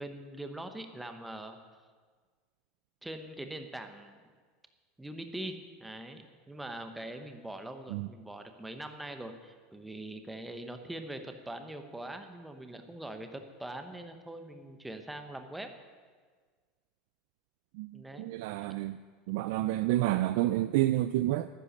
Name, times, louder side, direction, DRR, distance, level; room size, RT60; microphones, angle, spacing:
voice 1, 0.0-1.6 3.0-4.2 5.0-15.7 17.9-18.3, right 1 dB, 5° right, 6 dB, 0.8 m, -42 dB
voice 2, 17.7-19.0 19.3-21.5, right 15 dB, 60° right, 12 dB, 0.4 m, -29 dB
13.0 x 10.0 x 6.6 m, 1.5 s
supercardioid pair, 170°, 0 cm